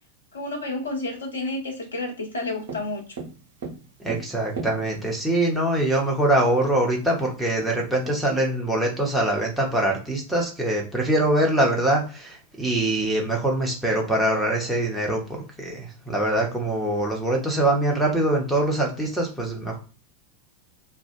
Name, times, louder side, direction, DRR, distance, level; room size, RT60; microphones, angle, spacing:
voice 1, 0.3-3.0, left 2 dB, 70° left, 1 dB, 0.7 m, -30 dB
Tap, 2.7-5.3 6.2-6.3 6.6-6.8 7.1-8.5, right 4 dB, 55° right, 1.0 m, -37 dB
voice 2, 4.0-19.8, right 1 dB, ahead, -2 dB, 0.9 m, -23 dB
2.6 x 2.1 x 2.5 m, 0.35 s
figure-of-eight pair, 90°, 0 cm